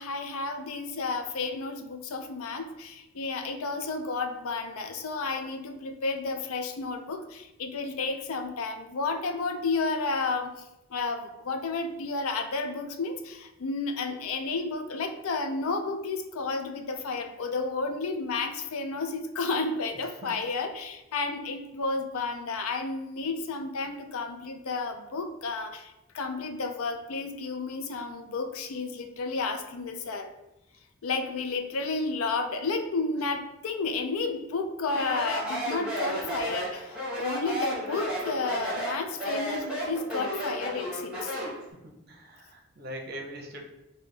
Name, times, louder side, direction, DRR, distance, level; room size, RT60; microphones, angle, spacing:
voice 1, 0.0-10.5 10.9-30.3 31.0-41.3, left 3 dB, 80° left, 6 dB, 0.4 m, -32 dB
voice 2, 20.0-20.3 33.1-33.2 41.8-43.6, equal, 45° right, 2 dB, 0.6 m, -42 dB
Speech, 34.9-41.6, equal, 5° right, 1.2 m, -33 dB
5.1 x 2.2 x 3.2 m, 0.93 s
head